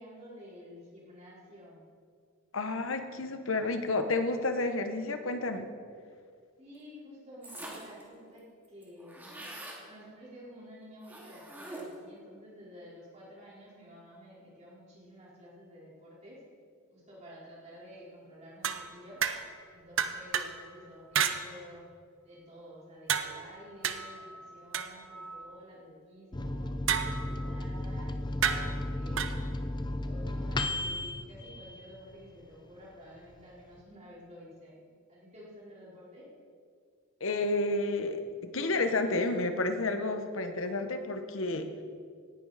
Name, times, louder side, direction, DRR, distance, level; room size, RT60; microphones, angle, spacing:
voice 1, 0.0-1.8 6.6-9.5 9.8-16.4 16.9-19.2 19.7-21.8 22.2-26.7 27.1-28.2 28.5-29.3 30.0-34.8 35.1-36.3, equal, 30° right, -7 dB, 4.3 m, -51 dB
voice 2, 2.5-5.7 37.2-41.7, left 2 dB, 65° left, 7 dB, 1.1 m, -30 dB
sound 1, 7.4-8.0 8.4-8.5 8.6-9.8 11.0-12.1, right 1 dB, 10° right, 2.4 m, -44 dB
sound 2, 18.6-19.6 20.0-20.6 21.1-21.4 23.1-25.5 26.9-27.5 28.4-29.4, right 7 dB, 60° right, 0.8 m, -32 dB
Microwave oven, 26.3-32.4 32.8-32.9 33.2-33.8, left 1 dB, 20° left, 0.7 m, -35 dB
18.0 x 11.0 x 4.2 m, 2.1 s
head